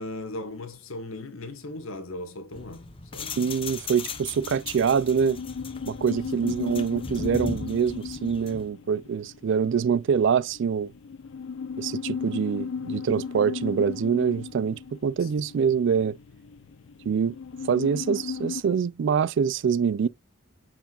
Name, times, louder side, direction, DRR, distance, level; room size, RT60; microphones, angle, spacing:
voice 1, 0.0-2.9 3.1-3.4 6.4-6.7 15.2-15.3, left 2 dB, 85° left, 1.5 m, -38 dB
sound 1, 2.5-8.7, left 4 dB, 25° left, 0.7 m, -39 dB
voice 2, 3.4-5.4 5.9-10.9 11.8-16.2 17.1-17.3 17.7-20.1, right 6 dB, 60° right, 0.3 m, -25 dB
sound 2, 3.9-18.6, left 5 dB, 65° left, 0.4 m, -36 dB
8.9 x 4.8 x 2.4 m
head